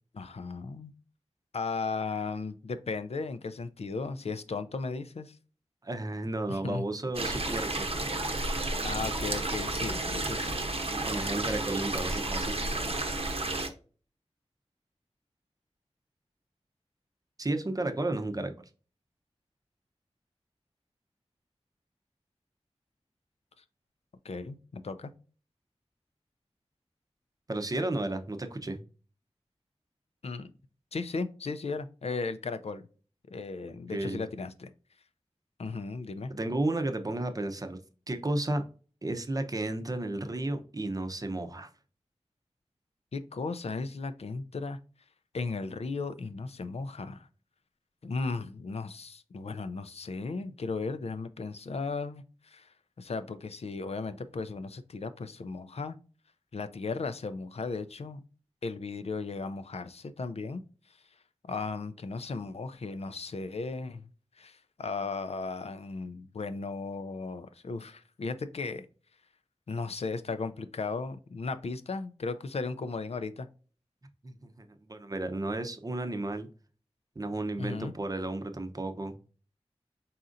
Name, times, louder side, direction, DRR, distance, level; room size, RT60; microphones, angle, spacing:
voice 1, 0.1-0.9 1.5-5.4 6.5-6.8 8.8-10.6 24.2-25.1 30.2-30.5 30.9-32.8 33.3-34.7 35.6-36.3 43.1-44.8 45.3-47.3 48.0-56.0 56.5-58.2 58.6-60.6 61.5-64.1 64.4-68.9 69.7-73.5 77.6-77.9, left 4 dB, 70° left, 0.4 m, -36 dB
voice 2, 5.8-7.9 10.9-12.6 17.4-18.5 27.5-28.8 33.9-34.2 36.3-37.8 38.1-38.6 39.0-41.7 74.2-76.5 77.2-79.2, right 2 dB, 35° right, 0.7 m, -33 dB
sound 1, 7.1-13.7, right 2 dB, 60° right, 0.8 m, -32 dB
4.2 x 3.8 x 2.5 m
wide cardioid pair, 65°, 11 cm